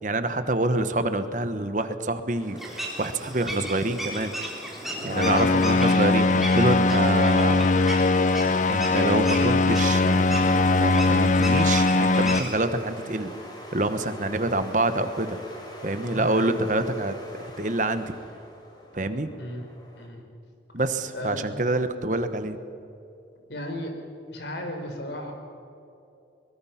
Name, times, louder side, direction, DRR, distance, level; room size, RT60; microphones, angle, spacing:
voice 1, 0.0-2.6 3.0-4.3 5.0-8.2 8.7-13.3 13.7-15.4 15.8-17.1 17.4-18.1 18.9-19.3 20.7-22.6, right 2 dB, 45° right, 10 dB, 1.2 m, -27 dB
sound 1, 2.3-20.1, equal, 25° left, 3.5 m, -44 dB
sound 2, 2.6-12.5, right 1 dB, ahead, 3.6 m, -36 dB
voice 2, 5.0-5.9 16.1-16.5 19.4-19.7 19.9-20.2 21.1-21.7 23.5-23.9 24.3-25.3, equal, 80° left, 4 dB, 4.1 m, -35 dB
sound 3, 5.1-12.4, left 3 dB, 40° left, 0.5 m, -21 dB
23.5 x 22.0 x 5.8 m, 2.8 s
head